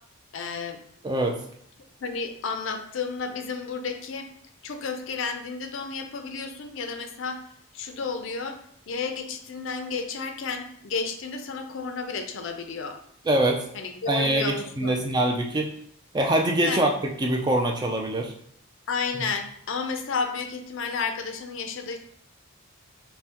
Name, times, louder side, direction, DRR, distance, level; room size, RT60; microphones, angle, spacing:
voice 1, 0.3-0.8 2.0-4.3 4.6-7.4 7.7-8.6 8.9-13.0 13.7-15.0 16.6-16.8 18.9-22.0, left 5 dB, 60° left, 6 dB, 0.4 m, -32 dB
voice 2, 1.0-1.4 13.3-13.6 14.1-15.7 16.1-18.3, right 1 dB, 20° right, 2 dB, 0.3 m, -24 dB
5.4 x 2.1 x 2.9 m, 0.66 s
head